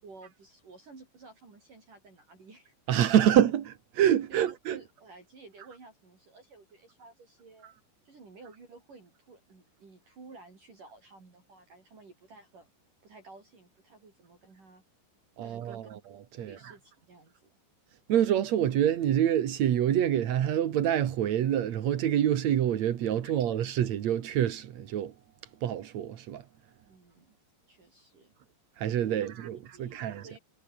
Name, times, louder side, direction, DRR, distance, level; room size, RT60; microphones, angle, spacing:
voice 1, 0.0-2.8 3.2-3.3 4.3-7.7 8.0-12.7 13.0-14.8 15.4-15.8 16.4-17.6 23.2-23.4 26.8-27.4 27.7-28.3 29.0-30.4, right 3 dB, 45° right, 7.7 m, -53 dB
voice 2, 2.9-4.8 7.6-7.7 15.4-16.8 18.1-25.1 25.6-26.4 28.8-30.4, right 10 dB, 70° right, 1.6 m, -27 dB
omnidirectional pair, 5.5 m